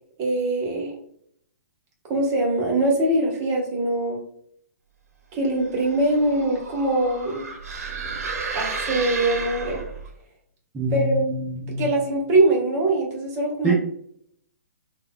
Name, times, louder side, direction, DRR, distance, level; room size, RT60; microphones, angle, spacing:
voice 1, 0.2-0.9 2.1-4.2 5.3-7.4 8.5-9.8 10.9-11.2 11.8-13.7, right 2 dB, 30° right, -1 dB, 1.0 m, -22 dB
sound 1, 5.6-10.1, right 4 dB, 65° right, 0.7 m, -32 dB
voice 2, 10.7-11.8 13.6-13.7, right 2 dB, 15° right, -5 dB, 0.6 m, -25 dB
3.4 x 2.1 x 2.2 m, 0.67 s
hypercardioid pair, 125°, 9 cm